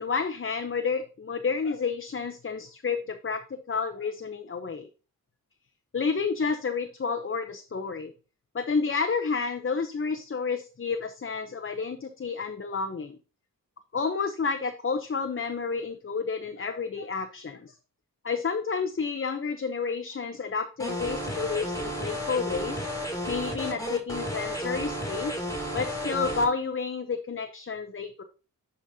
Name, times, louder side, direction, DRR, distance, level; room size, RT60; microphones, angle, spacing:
voice 1, 0.0-4.9 5.9-8.1 8.5-13.2 13.9-17.7 18.2-22.8 23.3-25.3 25.7-28.2, left 5 dB, 35° left, 8 dB, 0.7 m, -30 dB
sound 1, 20.8-26.4, equal, 10° left, 2.5 m, -32 dB
9.9 x 5.1 x 2.7 m, 0.35 s
wide cardioid pair, 70°, 35 cm